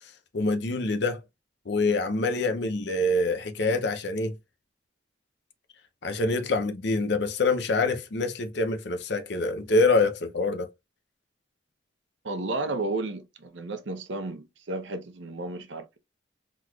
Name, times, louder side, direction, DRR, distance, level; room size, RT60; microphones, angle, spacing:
voice 1, 0.3-1.2 1.7-4.3 6.0-10.7, left 2 dB, 60° left, 0.6 m, -25 dB
voice 2, 12.2-16.0, right 2 dB, 70° right, 0.7 m, -33 dB
3.9 x 3.0 x 2.3 m
head